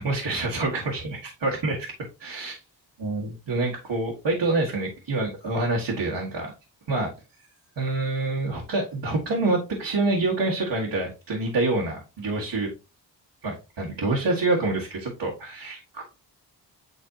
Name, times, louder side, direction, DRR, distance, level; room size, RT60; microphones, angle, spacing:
voice 1, 0.0-1.9 2.2-2.6 3.0-6.5 6.9-7.1 7.8-12.7 13.4-16.2, right 2 dB, 70° right, -2 dB, 1.9 m, -27 dB
9.9 x 3.5 x 2.9 m, 0.29 s
cardioid pair, 75°, 44 cm